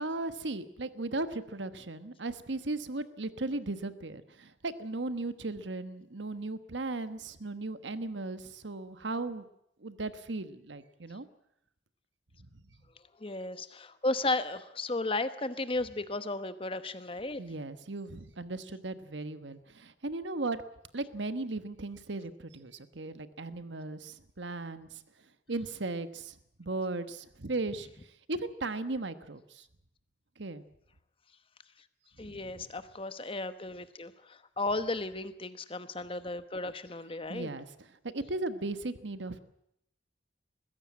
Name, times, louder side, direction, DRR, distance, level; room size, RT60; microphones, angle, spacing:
voice 1, 0.0-9.4 9.8-11.3 17.4-20.6 20.9-25.0 25.5-27.9 28.3-29.6 30.4-30.6 32.3-32.6 37.3-37.7 38.0-39.4, right 2 dB, 85° right, 11 dB, 1.3 m, -37 dB
voice 2, 13.2-17.4 32.2-37.5, left 2 dB, 30° left, 11 dB, 1.1 m, -34 dB
21.5 x 15.5 x 8.6 m, 0.78 s
head